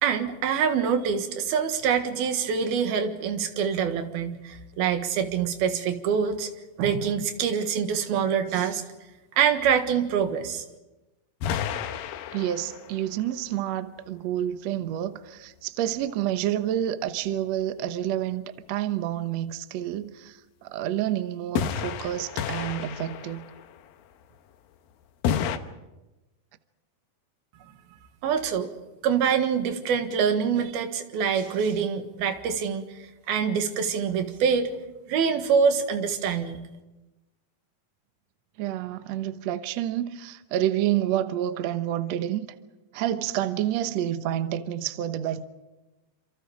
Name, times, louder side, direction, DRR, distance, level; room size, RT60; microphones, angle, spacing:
voice 1, 0.0-6.5 6.8-8.8 9.3-10.7 28.2-28.7 29.0-32.8 33.3-34.7 35.1-36.6, right 7 dB, 90° right, 3.5 m, -25 dB
sound 1, 11.4-13.1 21.6-23.8 25.2-25.6, left 8 dB, 80° left, 2.8 m, -30 dB
voice 2, 12.3-23.5 38.6-42.5 42.9-45.4, right 12 dB, 65° right, 1.8 m, -29 dB
28.0 x 27.0 x 5.0 m
omnidirectional pair, 4.2 m